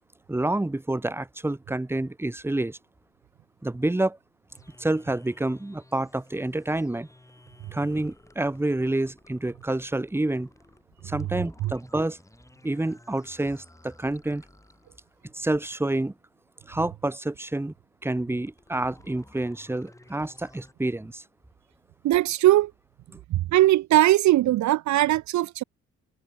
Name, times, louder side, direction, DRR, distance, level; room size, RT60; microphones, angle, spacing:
voice 1, 0.3-2.8 3.6-4.2 4.8-7.1 7.7-10.5 11.0-12.2 12.6-14.4 15.3-16.1 16.7-17.7 18.0-21.2 23.1-23.2, right 2 dB, 10° right, 1.2 m, -28 dB
sound 1, 4.5-15.3 18.3-20.7, left 1 dB, 10° left, 5.1 m, -55 dB
voice 2, 22.0-22.7 23.3-25.6, right 15 dB, 70° right, 0.6 m, -20 dB
cardioid pair, 90°, 30 cm